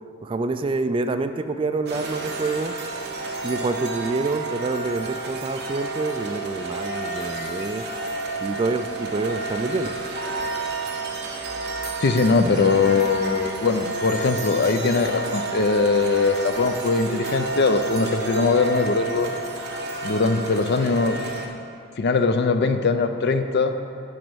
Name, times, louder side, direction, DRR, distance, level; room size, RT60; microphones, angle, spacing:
voice 1, 0.2-2.8 3.4-7.9 8.4-9.9, right 3 dB, 25° right, 9 dB, 0.3 m, -27 dB
sound 1, 1.9-21.5, right 3 dB, 50° right, 1.0 m, -30 dB
voice 2, 12.0-19.3 20.0-21.2 22.0-23.8, left 4 dB, 50° left, 9 dB, 0.5 m, -21 dB
9.3 x 5.1 x 6.2 m, 2.4 s
head